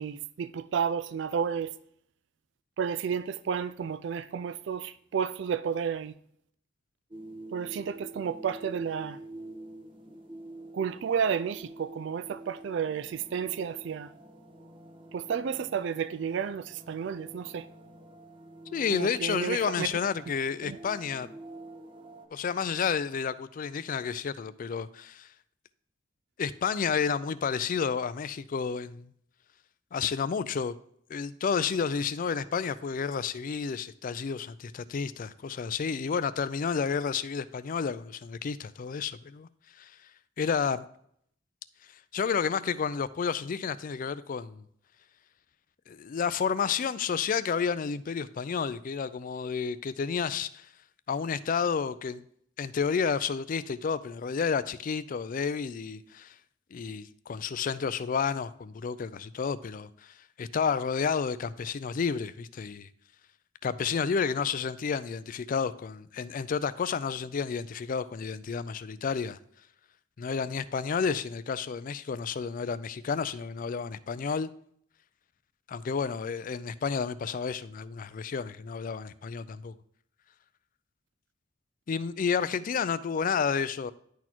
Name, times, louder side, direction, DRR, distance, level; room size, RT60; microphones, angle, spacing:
voice 1, 0.0-1.7 2.8-6.1 7.5-9.2 10.7-14.1 15.1-17.7 18.9-19.9 20.6-20.8, right 7 dB, 65° right, 0.3 m, -31 dB
sound 1, 7.1-22.3, right 2 dB, 25° right, 1.0 m, -47 dB
voice 2, 18.7-21.3 22.3-25.3 26.4-29.1 29.9-30.7 31.1-39.5 39.8-39.9 40.4-40.8 42.1-44.6 45.9-50.7 51.1-52.2 52.6-56.3 56.7-62.9 63.6-69.4 70.2-74.5 75.7-79.7 81.9-83.9, left 6 dB, 45° left, 0.4 m, -31 dB
10.5 x 4.2 x 4.4 m
head